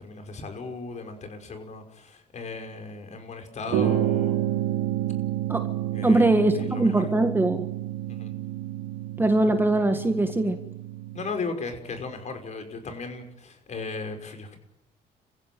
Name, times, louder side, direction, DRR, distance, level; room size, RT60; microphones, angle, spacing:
voice 1, 0.0-4.6 5.9-6.3 6.7-7.0 8.1-8.3 11.1-14.6, left 4 dB, 45° left, 5.5 m, -36 dB
sound 1, 3.7-11.4, right 12 dB, 80° right, 1.7 m, -29 dB
voice 2, 6.0-7.7 9.2-10.6, right 2 dB, 10° right, 1.7 m, -22 dB
30.0 x 15.5 x 9.1 m
cardioid pair, 110°, 17 cm